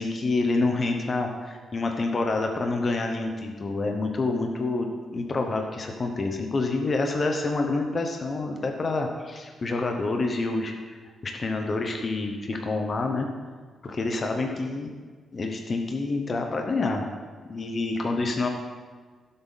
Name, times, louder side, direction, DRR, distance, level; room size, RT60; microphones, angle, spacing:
voice 1, 0.0-10.7 11.2-13.3 13.8-14.9 15.3-17.1 17.5-18.5, left 3 dB, 30° left, 3 dB, 1.0 m, -27 dB
16.0 x 7.8 x 4.1 m, 1.5 s
wide cardioid pair, 155°, 0 cm